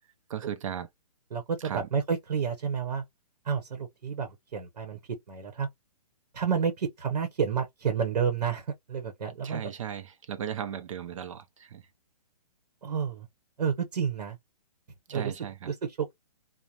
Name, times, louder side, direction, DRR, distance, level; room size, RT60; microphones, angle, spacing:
voice 1, 0.3-0.9 1.7-1.9 9.4-10.0 10.3-11.8 15.1-15.5, right 9 dB, 55° right, 0.6 m, -36 dB
voice 2, 1.3-3.0 3.4-5.7 6.3-9.7 12.8-13.3 13.6-14.4 15.1-16.2, right 6 dB, 80° right, 0.9 m, -30 dB
2.4 x 2.1 x 2.9 m
hypercardioid pair, 160°, 20 cm